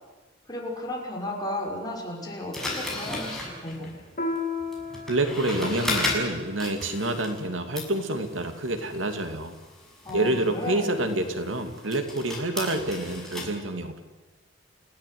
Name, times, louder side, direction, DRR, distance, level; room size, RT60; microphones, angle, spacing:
voice 1, 0.5-4.0 10.0-10.9, left 1 dB, 20° left, -1 dB, 6.1 m, -34 dB
sound 1, 2.5-7.5 7.7-13.5, left 2 dB, ahead, 6.7 m, -35 dB
Piano, 4.2-9.1, left 3 dB, 50° left, 4.6 m, -37 dB
voice 2, 5.1-9.6 10.1-14.0, right 2 dB, 85° right, 7 dB, 2.5 m, -28 dB
29.0 x 16.5 x 9.5 m, 1.3 s
head